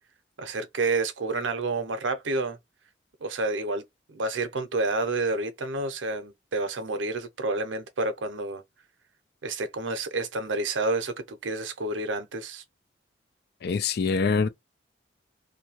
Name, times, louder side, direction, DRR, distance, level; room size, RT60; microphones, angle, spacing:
voice 1, 0.4-2.6 3.2-3.8 4.1-8.6 9.4-12.6, right 3 dB, 85° right, 0.6 m, -29 dB
voice 2, 13.6-14.5, left 5 dB, 55° left, 0.4 m, -24 dB
2.6 x 2.2 x 2.9 m
head